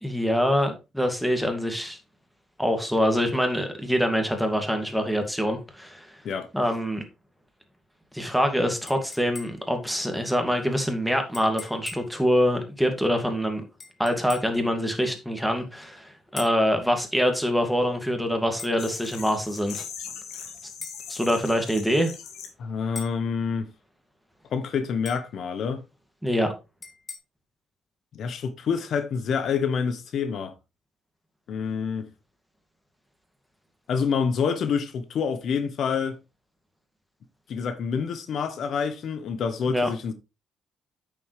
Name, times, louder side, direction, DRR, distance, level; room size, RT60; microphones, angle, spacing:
voice 1, 0.0-2.0 2.6-6.1 6.5-7.0 8.1-13.6 14.0-19.8 21.1-22.1 26.2-26.5 39.7-39.9, equal, ahead, 2.2 m, -25 dB
sound 1, 8.9-9.8 11.3-12.2 13.8-14.6 16.4-16.7 18.6-18.8 20.8-21.1 23.0-23.3 25.1-25.4 26.8-27.2, left 4 dB, 40° left, 1.9 m, -41 dB
sound 2, 18.8-22.5, left 7 dB, 85° left, 2.1 m, -40 dB
voice 2, 22.6-23.7 24.5-25.8 28.1-30.6 31.5-32.1 33.9-36.2 37.5-40.1, left 6 dB, 65° left, 1.0 m, -27 dB
8.5 x 6.9 x 3.3 m
cardioid pair, 90°, 0 cm